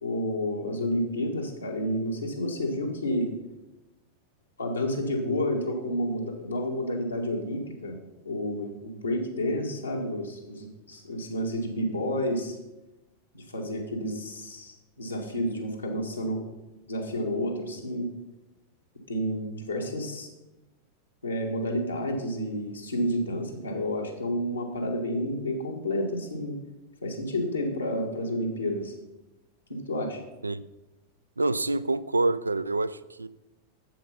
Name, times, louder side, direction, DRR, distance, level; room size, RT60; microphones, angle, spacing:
voice 1, 0.0-3.3 4.6-8.0 8.2-12.6 13.3-16.4 16.9-18.1 19.1-20.3 21.2-26.6 27.0-28.9 29.7-30.2, equal, 80° left, 1.7 m, -30 dB
voice 2, 31.4-33.3, right 2 dB, 80° right, 0.3 m, -27 dB
7.8 x 7.7 x 5.5 m
figure-of-eight pair, 90°, 0 cm